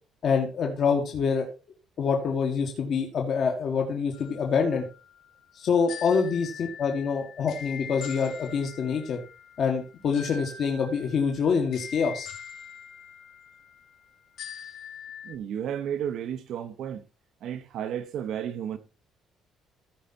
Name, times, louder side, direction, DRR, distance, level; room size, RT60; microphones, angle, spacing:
voice 1, 0.2-1.5 2.0-4.8 5.6-9.2 9.6-12.3, left 6 dB, 45° left, 1.8 m, -26 dB
sound 1, 4.1-15.3, left 7 dB, 70° left, 3.1 m, -44 dB
voice 2, 15.2-17.0 17.4-18.8, right 9 dB, 60° right, 1.2 m, -32 dB
15.0 x 5.2 x 4.4 m
cardioid pair, 150°, 0 cm